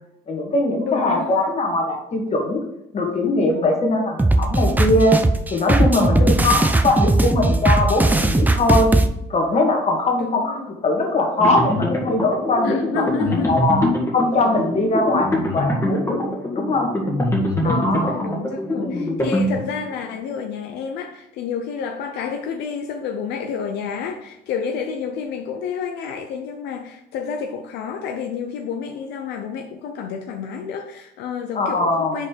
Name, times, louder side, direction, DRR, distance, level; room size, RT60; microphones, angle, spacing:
voice 1, 0.3-2.6 2.9-5.1 5.5-8.9 9.3-10.6 10.8-13.0 13.5-13.9 14.1-16.2 16.5-16.9 17.6-18.2 18.8-19.1 31.6-32.1, left 2 dB, 40° left, 1 dB, 1.8 m, -21 dB
voice 2, 0.9-1.4 6.2-6.7 10.2-10.7 12.6-13.7 17.6-32.3, left 6 dB, 80° left, 4 dB, 0.7 m, -29 dB
sound 1, 4.2-9.1, right 2 dB, 10° right, 0.5 m, -18 dB
sound 2, 11.4-20.0, left 1 dB, 15° left, 1.5 m, -24 dB
5.2 x 4.2 x 5.2 m, 0.85 s
cardioid pair, 110°, 17 cm